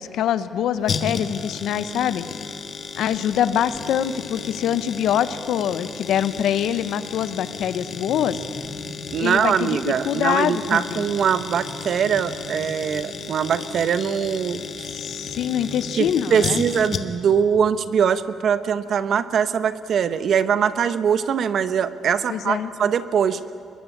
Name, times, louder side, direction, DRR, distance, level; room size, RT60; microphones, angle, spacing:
voice 1, 0.0-2.3 3.0-8.4 9.2-11.1 14.9-16.6 22.3-22.7, left 9 dB, 80° left, 13 dB, 1.0 m, -24 dB
sound 1, 0.9-17.4 17.6-17.7, left 5 dB, 55° left, 1.6 m, -34 dB
sound 2, 7.4-9.2 11.1-12.9 14.8-16.7, left 1 dB, 5° left, 3.2 m, -43 dB
voice 2, 9.1-14.9 15.9-23.4, right 7 dB, 60° right, 13 dB, 1.1 m, -22 dB
24.0 x 21.5 x 8.6 m, 2.5 s
cardioid pair, 90°, 0 cm